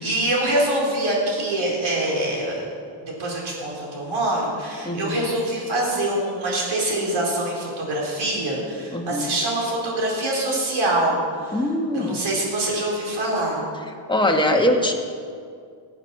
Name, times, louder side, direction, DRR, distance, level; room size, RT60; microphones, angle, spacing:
voice 1, 0.0-2.7 3.2-11.6 11.9-13.6, right 1 dB, 70° right, -3 dB, 4.3 m, -24 dB
voice 2, 4.8-5.2 8.9-9.3 11.5-12.2 14.1-14.9, left 1 dB, 10° left, 2 dB, 1.4 m, -22 dB
17.0 x 8.1 x 5.9 m, 2.2 s
cardioid pair, 120°, 49 cm